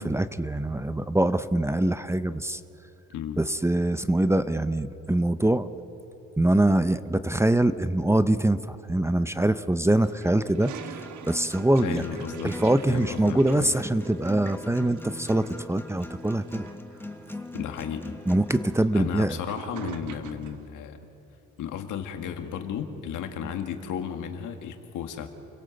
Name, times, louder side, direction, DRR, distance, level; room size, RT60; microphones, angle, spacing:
voice 1, 0.0-2.6 3.4-5.7 6.4-10.7 11.3-12.0 12.4-16.7 18.3-19.4, right 1 dB, 10° right, 12 dB, 0.7 m, -24 dB
Toilet flush, 10.0-20.6, right 9 dB, 75° right, 1.3 m, -46 dB
Acoustic guitar, 10.8-18.8, left 2 dB, 5° left, 1.3 m, -40 dB
voice 2, 11.8-12.5 12.9-13.8 17.5-18.2 18.9-21.0 21.6-25.3, left 8 dB, 85° left, 6 dB, 2.0 m, -34 dB
28.5 x 17.0 x 7.8 m, 2.9 s
cardioid pair, 90°, 30 cm